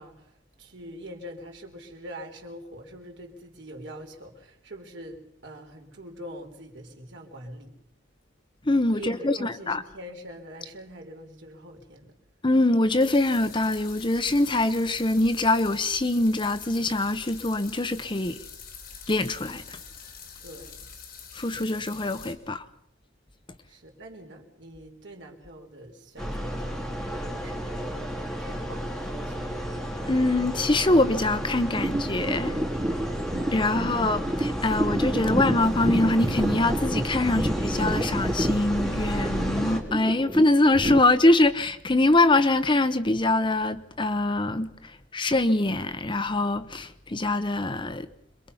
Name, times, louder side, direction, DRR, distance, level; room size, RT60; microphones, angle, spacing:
voice 1, 0.0-7.8 8.9-12.2 20.4-20.9 23.7-28.0 28.4-29.5, equal, 65° right, 4.2 m, -44 dB
voice 2, 8.7-9.8 12.4-18.4 19.1-19.8 21.3-22.7 30.1-32.6 33.5-48.1, left 2 dB, 25° left, 0.9 m, -24 dB
sound 1, 13.0-22.3, left 6 dB, 50° left, 4.0 m, -45 dB
sound 2, 26.2-39.8, equal, 5° left, 2.9 m, -32 dB
sound 3, 31.7-41.0, right 1 dB, 15° right, 0.9 m, -29 dB
26.5 x 23.0 x 5.6 m
head